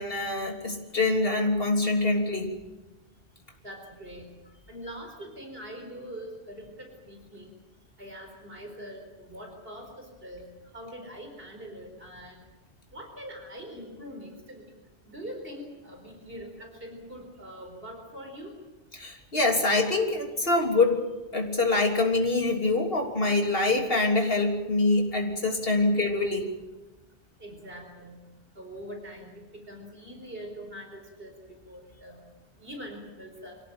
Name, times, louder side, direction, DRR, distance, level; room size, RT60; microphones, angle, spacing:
voice 1, 0.0-2.5 18.9-21.1 21.3-26.5, left 2 dB, 60° left, 2 dB, 3.5 m, -25 dB
voice 2, 3.6-4.3 4.7-7.5 8.0-10.5 10.7-12.4 12.9-14.6 15.0-18.5 27.4-28.2 28.6-32.2 32.6-33.6, equal, 60° right, 3 dB, 4.6 m, -43 dB
25.5 x 17.0 x 8.9 m, 1.1 s
omnidirectional pair, 1.1 m